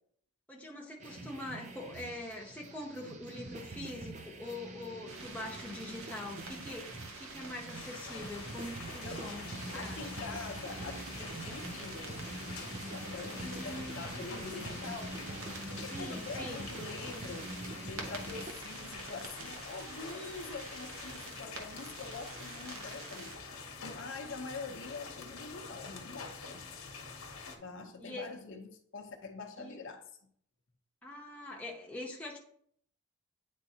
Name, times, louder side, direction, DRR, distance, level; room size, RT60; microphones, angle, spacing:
voice 1, 0.5-10.1 13.4-14.7 15.9-16.7 28.0-28.3 29.6-29.8 31.0-32.4, left 1 dB, 5° left, -3 dB, 0.8 m, -44 dB
sound 1, 1.0-18.5, right 2 dB, 35° right, 0.5 m, -45 dB
sound 2, 5.1-23.3, right 3 dB, 70° right, 1.0 m, -48 dB
sound 3, 7.7-27.6, left 4 dB, 80° left, 1.1 m, -46 dB
voice 2, 9.7-12.2 12.8-15.1 15.4-17.5 17.8-23.4 23.8-26.6 27.6-30.0, left 4 dB, 60° left, 3 dB, 0.8 m, -45 dB
9.1 x 3.7 x 2.8 m, 0.64 s
head